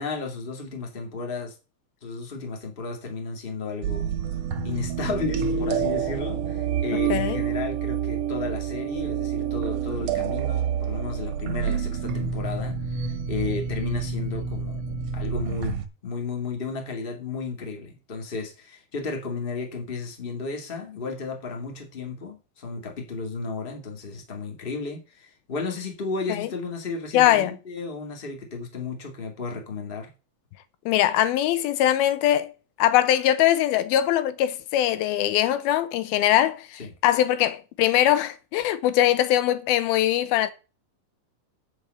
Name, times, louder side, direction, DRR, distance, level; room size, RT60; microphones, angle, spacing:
voice 1, 0.0-1.6 2.0-4.1 4.6-14.8 15.1-30.1 36.8-36.9, left 4 dB, 20° left, 1.8 m, -33 dB
sound 1, 3.8-15.9, right 7 dB, 60° right, 1.9 m, -28 dB
voice 2, 6.9-7.4 26.3-26.5 27.1-27.5 30.9-32.5 32.8-40.5, left 12 dB, 85° left, 2.8 m, -22 dB
8.7 x 5.5 x 7.6 m
omnidirectional pair, 4.2 m